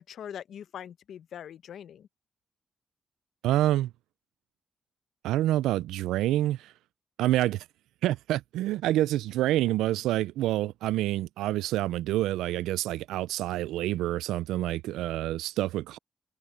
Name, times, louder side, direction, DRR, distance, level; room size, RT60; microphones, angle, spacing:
voice 1, 0.0-2.1, left 9 dB, 75° left, 0.9 m, -42 dB
voice 2, 3.4-3.9 5.2-6.7 7.2-7.6 8.0-16.0, right 14 dB, 85° right, 0.5 m, -27 dB
hypercardioid pair, 40°, 0 cm